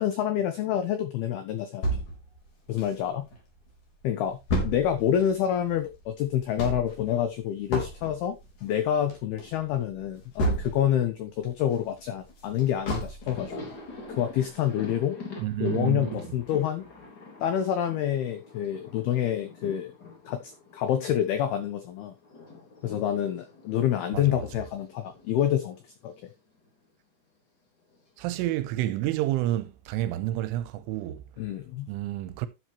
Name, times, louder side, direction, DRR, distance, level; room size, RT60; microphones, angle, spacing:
voice 1, 0.0-1.8 2.7-3.3 4.0-4.4 4.6-13.5 14.1-15.2 15.6-16.8 17.4-19.9 20.3-22.1 22.8-26.1 31.4-31.9, left 10 dB, 85° left, 2.2 m, -27 dB
sound 1, 1.8-3.4 3.8-3.9 4.0-11.0 11.4-13.6 14.0-14.1 14.5-14.6, equal, 40° left, 4.8 m, -32 dB
Thunder, 12.5-12.6 12.9-21.7 22.0-26.3 26.6-26.7 27.9-28.6, left 3 dB, 25° left, 3.1 m, -44 dB
voice 2, 15.4-16.1 24.1-24.5 28.2-31.2 31.9-32.5, right 14 dB, 85° right, 3.2 m, -29 dB
12.0 x 8.1 x 3.1 m
omnidirectional pair, 5.9 m